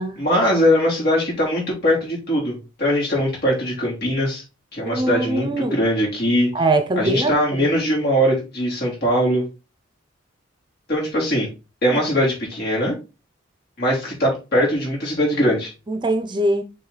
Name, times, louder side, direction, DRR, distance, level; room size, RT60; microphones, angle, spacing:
voice 1, 0.2-4.4 4.7-6.5 7.0-9.4 10.9-11.5 11.8-13.0 13.8-15.7, equal, 55° left, 3.6 m, -21 dB
voice 2, 4.8-5.8 6.5-7.3 7.6-7.7 11.9-12.0 15.9-16.6, right 2 dB, 25° right, 0.7 m, -22 dB
6.7 x 4.0 x 4.1 m
head